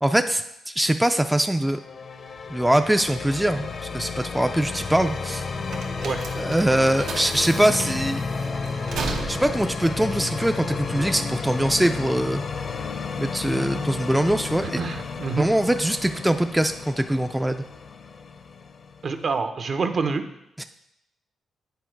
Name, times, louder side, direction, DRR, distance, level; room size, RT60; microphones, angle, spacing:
voice 1, 0.0-1.8 2.5-3.7 3.9-5.5 6.4-8.2 9.3-12.4 13.2-14.8 15.4-17.6 20.6-20.7, right 1 dB, 5° right, 7 dB, 0.3 m, -22 dB
sound 1, 1.6-19.4, left 4 dB, 45° left, 0.6 m, -32 dB
sound 2, 4.4-11.2, right 4 dB, 85° right, 0.9 m, -36 dB
voice 2, 14.6-15.5 19.0-20.3, right 4 dB, 50° right, 8 dB, 0.7 m, -27 dB
8.4 x 4.4 x 4.6 m, 0.84 s
cardioid pair, 90°, 0 cm